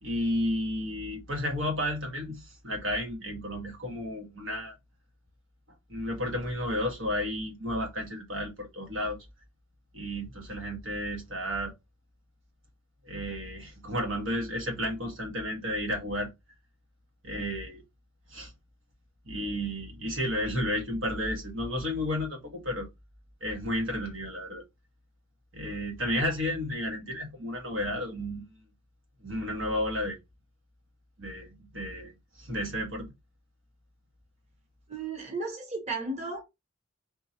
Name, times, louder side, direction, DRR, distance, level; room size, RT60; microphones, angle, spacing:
voice 1, 0.0-4.7 5.9-9.2 9.9-11.7 13.0-16.3 17.2-17.8 18.3-18.5 19.2-22.9 23.4-24.6 25.5-28.4 29.2-30.2 31.2-32.1 32.4-33.1, equal, 75° right, 1.5 m, -32 dB
voice 2, 34.9-36.4, right 3 dB, 35° right, 1.0 m, -34 dB
4.3 x 3.1 x 2.9 m
head